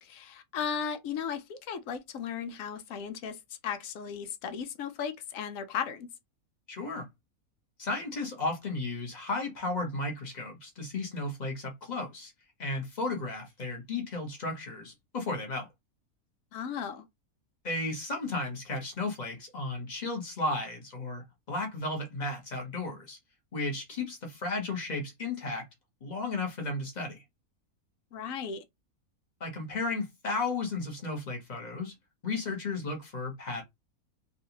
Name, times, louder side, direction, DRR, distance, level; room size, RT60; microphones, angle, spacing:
voice 1, 0.0-6.1 16.5-17.0 28.1-28.6, left 7 dB, 70° left, 1.0 m, -36 dB
voice 2, 6.7-7.1 7.8-12.3 12.6-15.7 17.6-23.2 23.5-25.6 26.0-27.2 29.4-31.9 32.2-33.6, left 2 dB, 35° left, 1.1 m, -34 dB
3.8 x 2.4 x 2.9 m
omnidirectional pair, 1.5 m